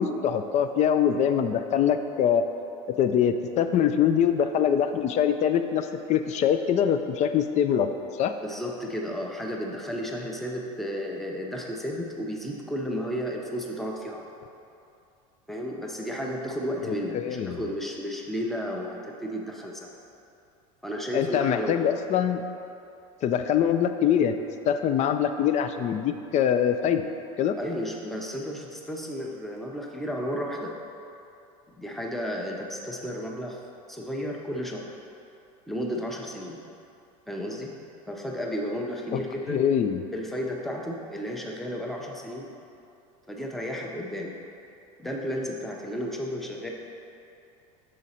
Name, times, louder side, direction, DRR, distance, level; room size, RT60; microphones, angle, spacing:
voice 1, 0.0-2.4 3.0-7.9 8.2-8.3 16.8-17.6 21.1-22.4 23.2-24.3 24.7-27.1 27.4-27.6 39.1-39.2 39.5-40.0, left 8 dB, 40° left, 8 dB, 0.4 m, -24 dB
voice 2, 8.4-14.2 15.5-19.9 20.8-21.8 27.6-30.8 31.8-33.6 33.9-34.9 35.7-36.6 37.3-37.8 38.1-39.6 40.1-42.5 43.3-44.3 45.0-46.7, equal, ahead, -1 dB, 0.7 m, -33 dB
6.3 x 3.8 x 4.2 m, 2.6 s
hypercardioid pair, 85°, 18 cm